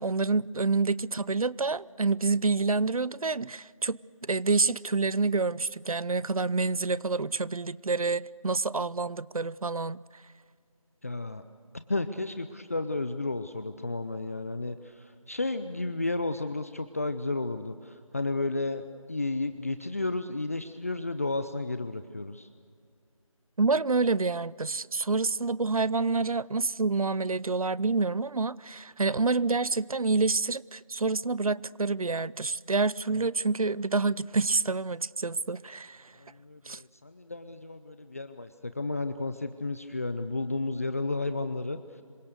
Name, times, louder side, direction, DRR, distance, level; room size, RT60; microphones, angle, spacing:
voice 1, 0.0-10.0 23.6-36.1 36.7-36.8, right 3 dB, 90° right, 0.7 m, -28 dB
voice 2, 11.0-11.4 11.9-22.5 36.2-41.8, left 2 dB, 25° left, 0.6 m, -32 dB
26.5 x 23.5 x 6.7 m
figure-of-eight pair, 165°, 18 cm